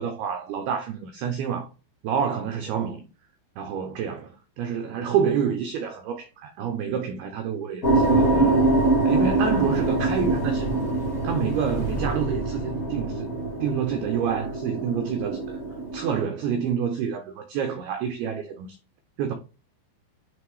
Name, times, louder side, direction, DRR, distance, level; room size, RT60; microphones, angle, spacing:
voice 1, 0.0-1.7 2.0-3.0 3.6-8.6 9.1-10.8 11.2-13.3 13.6-15.6 15.9-18.7 19.2-19.3, right 7 dB, 80° right, 2.3 m, -28 dB
sound 1, 7.8-16.2, right 2 dB, 85° left, 0.7 m, -24 dB
7.9 x 3.4 x 4.6 m
omnidirectional pair, 5.4 m